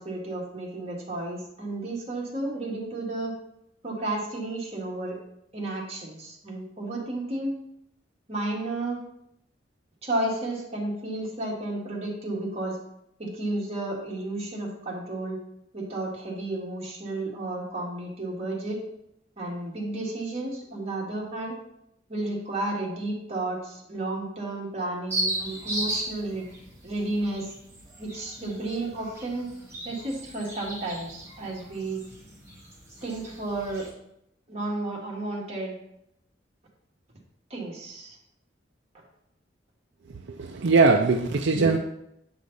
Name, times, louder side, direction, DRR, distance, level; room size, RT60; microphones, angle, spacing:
voice 1, 0.0-3.3 3.8-5.2 5.5-7.5 8.3-9.0 10.0-12.8 13.2-15.4 15.7-18.8 19.4-21.5 22.1-26.5 26.8-27.5 28.0-29.5 29.8-32.0 33.0-33.9 34.5-35.7 37.5-38.2, right 2 dB, 35° right, -3 dB, 1.8 m, -32 dB
sound 1, 25.1-33.9, right 1 dB, 15° right, 2.6 m, -36 dB
voice 2, 40.1-41.8, right 3 dB, 70° right, 4 dB, 0.5 m, -21 dB
8.0 x 4.9 x 4.0 m, 0.79 s
head